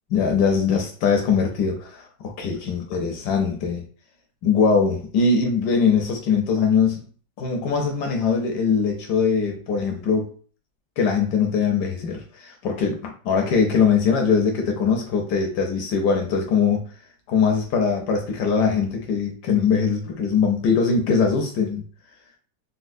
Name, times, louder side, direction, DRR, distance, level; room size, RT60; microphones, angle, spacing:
voice 1, 0.1-3.8 4.4-7.0 7.4-10.3 11.0-16.8 17.3-21.8, left 5 dB, 75° left, 2 dB, 1.0 m, -21 dB
4.2 x 2.0 x 2.5 m, 0.42 s
omnidirectional pair, 2.3 m